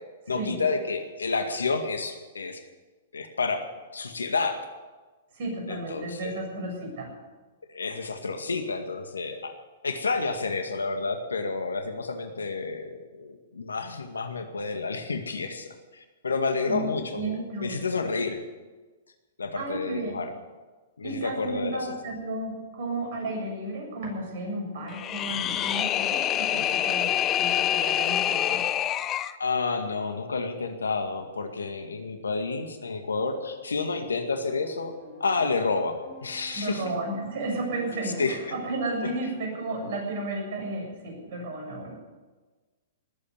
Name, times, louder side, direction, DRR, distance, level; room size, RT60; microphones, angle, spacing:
voice 1, 0.3-2.6 3.1-3.6 3.9-4.6 5.7-6.4 7.7-9.5 9.8-18.4 19.4-20.3 21.0-22.0 29.4-34.9 35.2-36.8 38.2-38.4, left 4 dB, 85° left, 6 dB, 2.0 m, -30 dB
voice 2, 5.3-7.1 16.7-17.8 19.6-20.1 21.0-28.6 36.5-41.9, right 2 dB, 55° right, 0 dB, 7.4 m, -33 dB
sound 1, 24.9-29.4, left 11 dB, 30° left, 0.7 m, -26 dB
sound 2, 34.3-39.9, right 1 dB, 25° right, 5.6 m, -49 dB
19.5 x 8.8 x 8.1 m, 1.3 s
hypercardioid pair, 115°, 0 cm